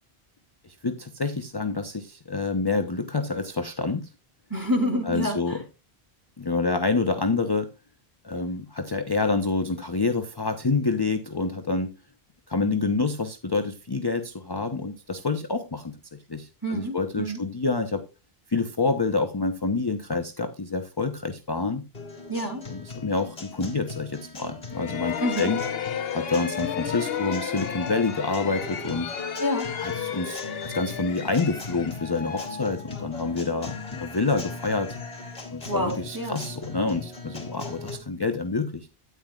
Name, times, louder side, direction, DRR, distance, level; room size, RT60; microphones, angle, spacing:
voice 1, 0.6-4.1 5.1-5.6 6.4-7.7 8.2-11.9 12.5-16.0 16.3-18.0 18.5-21.8 22.7-25.6 26.1-29.1 29.8-35.0 35.5-38.9, left 3 dB, 25° left, 0.8 m, -27 dB
voice 2, 4.5-5.6 16.6-17.4 22.3-22.6 25.2-25.5 29.4-29.7 35.7-36.4, equal, 20° right, 2.8 m, -28 dB
Guitar, 21.9-38.0, left 4 dB, 45° left, 3.0 m, -39 dB
sound 1, 24.7-33.4, left 8 dB, 70° left, 1.1 m, -33 dB
12.5 x 9.7 x 2.4 m
omnidirectional pair, 1.0 m